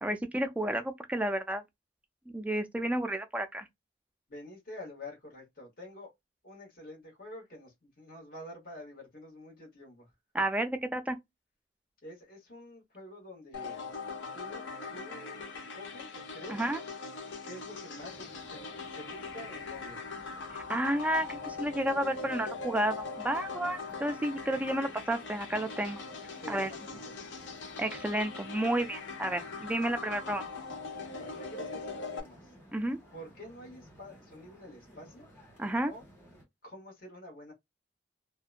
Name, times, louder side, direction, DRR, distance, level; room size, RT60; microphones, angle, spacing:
voice 1, 0.0-1.6 2.3-3.7 10.3-11.2 16.5-16.8 20.5-26.0 26.5-26.7 27.8-30.4 32.7-33.0 35.6-35.9, right 1 dB, 10° right, 0.3 m, -31 dB
voice 2, 4.3-6.1 6.4-10.1 12.0-13.9 14.3-16.6 17.4-20.0 26.4-27.5 31.2-32.5 33.1-35.3 35.9-36.0 36.6-37.5, left 1 dB, 50° left, 1.2 m, -48 dB
sound 1, 13.5-32.2, left 4 dB, 80° left, 0.5 m, -41 dB
sound 2, 18.0-36.4, equal, 15° left, 1.4 m, -56 dB
2.7 x 2.2 x 2.4 m
head